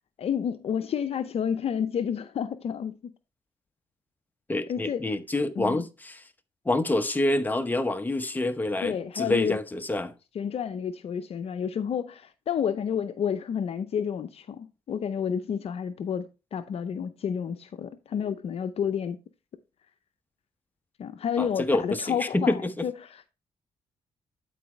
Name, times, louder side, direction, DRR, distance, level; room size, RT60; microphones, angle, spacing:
voice 1, 0.2-3.0 4.7-5.0 5.6-5.8 8.8-9.6 10.3-19.2 21.0-23.3, left 8 dB, 60° left, 0.6 m, -30 dB
voice 2, 4.5-6.2 6.6-10.1 21.4-22.9, left 2 dB, 15° left, 0.9 m, -27 dB
11.0 x 4.8 x 3.1 m
cardioid pair, 70°, 12 cm